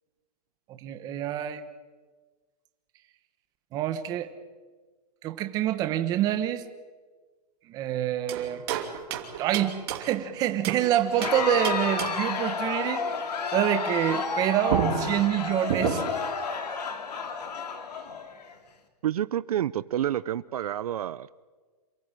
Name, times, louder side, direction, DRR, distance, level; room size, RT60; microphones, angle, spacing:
voice 1, 0.7-1.6 3.7-4.3 5.2-6.6 7.7-8.6 9.4-13.1 13.5-16.0, right 11 dB, 20° right, 8 dB, 1.2 m, -27 dB
sound 1, 8.3-10.9 11.2-12.4 14.3-14.4 14.7-16.3, right 9 dB, 40° right, 2.9 m, -31 dB
Crowd, 11.0-18.5, left 5 dB, 75° left, 3.4 m, -31 dB
voice 2, 19.0-21.5, right 11 dB, 65° right, 17 dB, 0.7 m, -29 dB
28.0 x 17.0 x 9.0 m, 1.4 s
hypercardioid pair, 170°, 21 cm